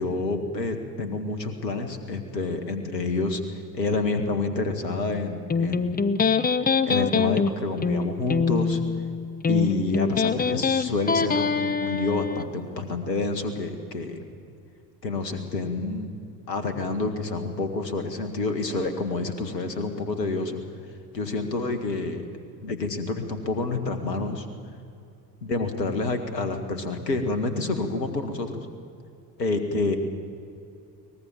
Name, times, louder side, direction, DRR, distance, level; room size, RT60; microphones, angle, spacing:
voice 1, 0.0-3.4 3.7-6.0 6.9-8.8 9.5-14.2 15.0-16.1 16.5-20.6 21.1-22.3 22.6-24.5 25.4-28.7 29.4-30.0, left 3 dB, 80° left, 7 dB, 2.1 m, -28 dB
Electric guitar, 5.5-12.5, left 5 dB, 20° left, 1.0 m, -24 dB
23.0 x 20.0 x 7.4 m, 2.5 s
figure-of-eight pair, 60°, 49 cm